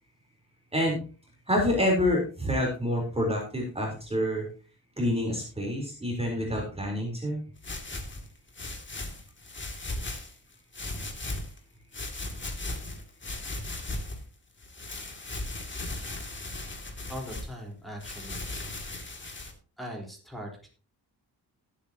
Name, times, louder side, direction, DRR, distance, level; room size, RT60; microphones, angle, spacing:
voice 1, 1.5-4.5 5.0-7.4, left 1 dB, 15° right, -1 dB, 4.0 m, -27 dB
sound 1, 7.6-10.3 10.7-11.6 11.9-14.2 14.6-17.5 18.0-19.5, left 2 dB, 30° left, 2.5 m, -37 dB
voice 2, 17.1-18.5 19.8-20.7, equal, ahead, -1 dB, 4.3 m, -40 dB
18.5 x 8.6 x 2.9 m, 0.37 s
wide cardioid pair, 105°, 39 cm